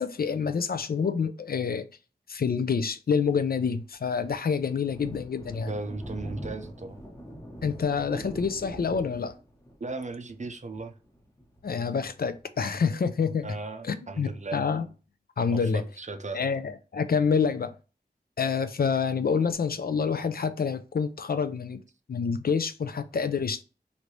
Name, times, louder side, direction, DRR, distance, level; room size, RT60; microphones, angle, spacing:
voice 1, 0.0-1.9 2.3-5.7 7.6-9.3 11.6-13.5 13.8-14.8 15.4-15.8 16.3-17.7 18.4-21.8 22.1-23.6, left 6 dB, 60° left, 0.4 m, -27 dB
Thunder, 3.6-12.8, equal, 15° left, 1.0 m, -44 dB
voice 2, 5.6-7.0 9.8-10.9 13.4-14.6 15.5-16.4, right 3 dB, 40° right, 0.5 m, -36 dB
3.2 x 2.6 x 3.0 m
wide cardioid pair, 75°, 18 cm